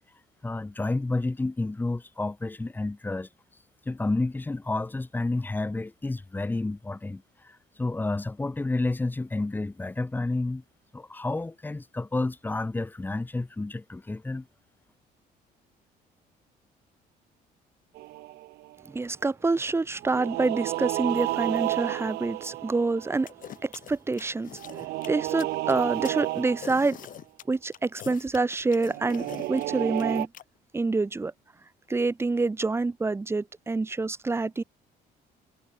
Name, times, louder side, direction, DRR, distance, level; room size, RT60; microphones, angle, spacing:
voice 1, 0.4-3.3 3.8-10.6 10.9-14.5, left 2 dB, 10° left, 1.0 m, -30 dB
sound 1, 18.0-18.8 20.0-23.5 24.5-27.0 28.9-30.3, right 18 dB, 75° right, 0.5 m, -31 dB
voice 2, 18.9-23.3 23.6-24.6 25.1-27.0 27.5-30.3 30.7-31.3 31.9-34.6, right 3 dB, 15° right, 0.8 m, -27 dB
sound 2, 23.3-30.4, left 11 dB, 50° left, 1.0 m, -43 dB
cardioid pair, 110°, 17 cm